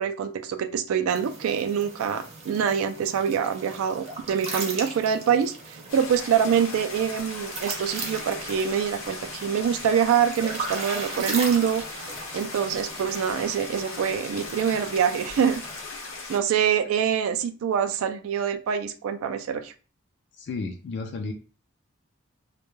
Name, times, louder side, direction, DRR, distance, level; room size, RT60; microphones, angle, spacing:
voice 1, 0.0-5.5 5.9-15.6 16.3-19.7, right 8 dB, 75° right, 8 dB, 0.3 m, -25 dB
sound 1, 1.1-15.8, right 3 dB, 30° right, 0.6 m, -38 dB
sound 2, 5.9-16.4, left 3 dB, 70° left, 0.8 m, -38 dB
voice 2, 20.3-21.3, left 3 dB, 55° left, 3 dB, 0.3 m, -32 dB
2.2 x 2.1 x 3.0 m, 0.36 s
head